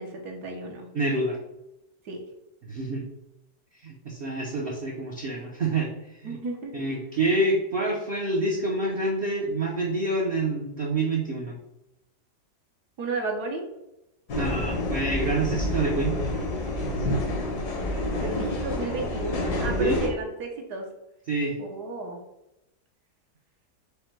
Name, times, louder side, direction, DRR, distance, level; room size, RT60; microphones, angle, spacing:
voice 1, 0.0-0.9 2.0-2.2 6.2-6.7 13.0-13.6 17.9-20.9 21.6-22.2, right 3 dB, 70° right, 1 dB, 1.4 m, -33 dB
voice 2, 0.9-1.4 2.6-3.0 3.8-5.9 6.2-6.4 6.7-11.6 14.3-16.2 19.8-20.0 21.3-21.6, right 2 dB, 50° right, -2 dB, 0.7 m, -27 dB
sound 1, 14.3-20.1, left 1 dB, 70° left, 1.6 m, -28 dB
5.2 x 2.2 x 4.4 m, 0.89 s
omnidirectional pair, 1.8 m